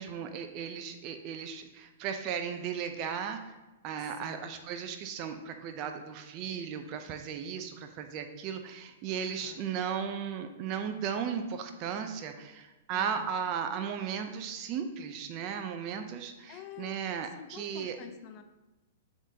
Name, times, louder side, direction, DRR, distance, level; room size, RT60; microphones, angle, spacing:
voice 1, 0.0-3.6 3.8-18.0, right 7 dB, 40° right, 6 dB, 0.5 m, -36 dB
voice 2, 4.0-4.6 9.2-9.6 12.9-13.3 16.5-18.4, left 10 dB, 40° left, 8 dB, 0.5 m, -49 dB
9.8 x 3.9 x 2.8 m, 1.1 s
hypercardioid pair, 130°, 0 cm